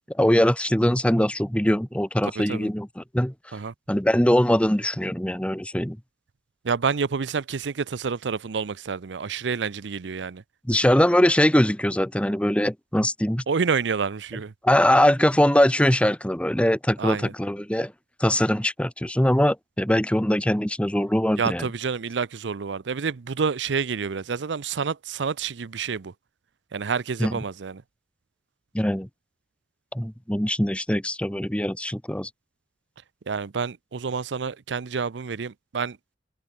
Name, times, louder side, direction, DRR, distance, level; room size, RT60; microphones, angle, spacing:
voice 1, 0.1-3.3 3.9-6.0 10.7-13.4 14.6-17.9 18.2-21.7 27.2-27.3 28.7-29.1 29.9-32.3, equal, 5° left, 1.4 m, -22 dB
voice 2, 2.4-2.7 3.5-3.7 6.6-10.4 13.5-14.5 17.0-17.3 21.4-26.1 26.7-27.8 33.3-36.0, right 5 dB, 80° right, 0.6 m, -28 dB
head